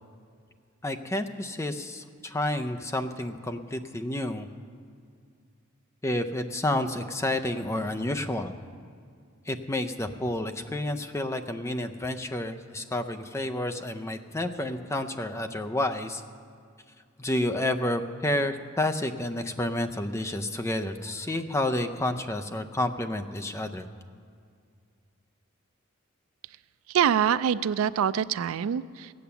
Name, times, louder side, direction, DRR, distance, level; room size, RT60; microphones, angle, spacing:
voice 1, 0.8-4.5 6.0-8.5 9.5-16.2 17.2-23.9, left 1 dB, 15° left, 6 dB, 0.5 m, -30 dB
voice 2, 26.9-29.1, right 8 dB, 90° right, 17 dB, 0.3 m, -25 dB
15.0 x 8.6 x 6.9 m, 2.2 s
head